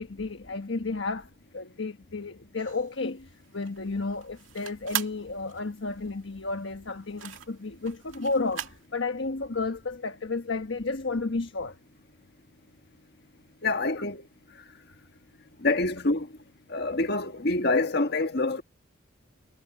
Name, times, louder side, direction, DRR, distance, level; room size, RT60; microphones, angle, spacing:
voice 1, 0.0-11.8 14.0-14.1, left 3 dB, 75° left, 1.2 m, -32 dB
sound 1, 2.6-8.9, right 10 dB, 90° right, 2.4 m, -39 dB
voice 2, 13.6-14.2 15.6-16.3 16.7-18.6, left 2 dB, 55° left, 1.6 m, -26 dB
head